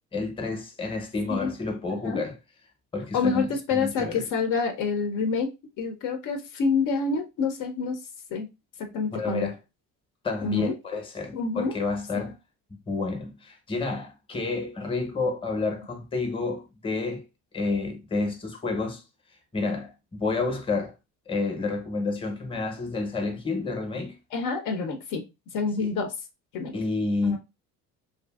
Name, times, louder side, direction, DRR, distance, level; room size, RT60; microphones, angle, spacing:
voice 1, 0.1-2.4 2.9-3.5 3.7-4.3 9.1-9.5 10.2-12.3 12.9-17.2 17.5-19.0 19.5-20.9 21.3-24.2 25.8-25.9 26.7-27.4, left 3 dB, 15° left, 0.7 m, -29 dB
voice 2, 3.1-5.5 5.8-8.0 8.3-8.5 8.9-9.5 10.4-10.7 11.3-11.7 12.1-12.3 24.3-25.2 25.5-26.1 26.5-26.7 27.2-27.4, left 4 dB, 65° left, 0.6 m, -27 dB
2.6 x 2.5 x 2.3 m
cardioid pair, 105°, 34 cm